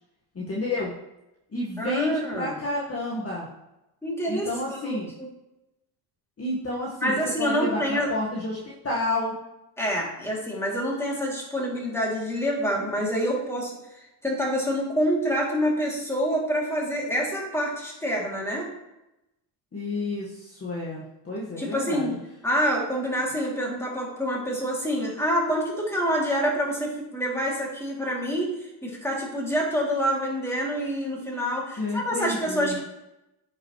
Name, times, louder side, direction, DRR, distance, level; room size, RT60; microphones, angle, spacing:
voice 1, 0.3-0.9 1.5-3.5 4.3-5.1 6.4-9.3 19.7-22.1 31.8-32.8, left 2 dB, 30° left, -5 dB, 1.7 m, -30 dB
voice 2, 1.8-2.6 4.0-5.3 7.0-8.1 9.8-18.6 21.6-22.1 22.4-32.8, equal, 5° left, -3 dB, 2.8 m, -27 dB
9.1 x 5.6 x 3.2 m, 0.92 s
cardioid pair, 95°, 49 cm